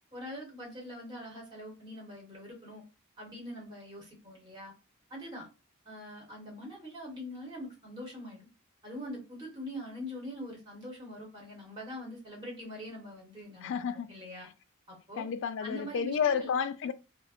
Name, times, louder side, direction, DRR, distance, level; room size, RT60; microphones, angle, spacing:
voice 1, 0.1-2.8 3.2-4.7 5.1-5.5 5.8-8.4 8.8-13.7 14.1-14.5 14.9-15.3 15.6-16.6, equal, 20° right, 1.1 m, -43 dB
voice 2, 13.6-14.1 15.1-16.9, left 7 dB, 55° left, 0.3 m, -31 dB
2.5 x 2.1 x 3.6 m
head